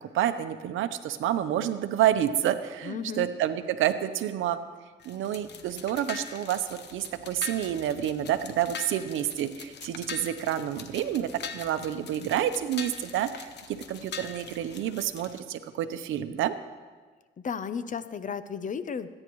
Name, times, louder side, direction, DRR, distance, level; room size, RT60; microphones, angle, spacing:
voice 1, 0.0-4.6 5.0-13.5 13.9-16.5, right 11 dB, 80° right, 10 dB, 0.8 m, -29 dB
voice 2, 2.8-3.3 17.4-19.1, left 6 dB, 40° left, 13 dB, 0.7 m, -34 dB
sound 1, 5.0-15.4, left 6 dB, 60° left, 1.0 m, -43 dB
25.5 x 9.8 x 3.1 m, 1.4 s
cardioid pair, 90°, 20 cm